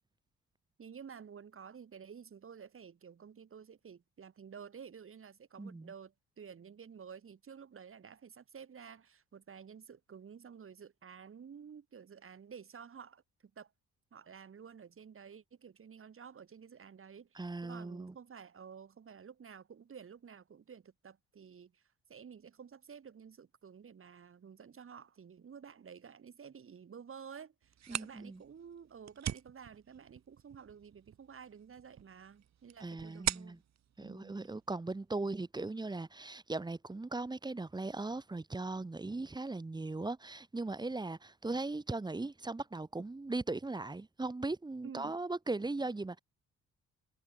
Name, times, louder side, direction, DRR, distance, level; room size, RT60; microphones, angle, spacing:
voice 1, 0.8-13.7 14.1-21.8 22.1-33.6 34.0-34.4 44.8-45.1, right 7 dB, 45° right, 3.8 m, -52 dB
voice 2, 5.6-5.9 17.3-18.1 27.9-28.4 32.8-33.6 34.0-46.2, right 3 dB, 15° right, 1.0 m, -38 dB
sound 1, 27.6-35.2, right 10 dB, 60° right, 2.9 m, -43 dB
cardioid pair, 90°, 30 cm